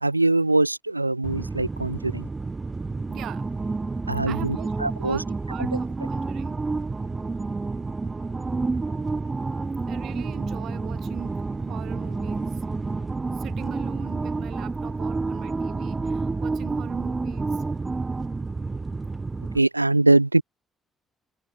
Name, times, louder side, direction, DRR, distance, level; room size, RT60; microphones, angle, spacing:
voice 1, 0.0-2.3 4.1-5.2 5.7-5.8 19.5-20.4, right 2 dB, 90° right, 0.4 m, -22 dB
sound 1, 1.2-19.6, right 3 dB, 25° right, 2.0 m, -29 dB
voice 2, 3.1-3.5 4.3-4.7 5.0-6.6 9.9-12.5 13.4-17.6, right 12 dB, 55° right, 1.1 m, -40 dB
figure-of-eight pair, 45°, 0 cm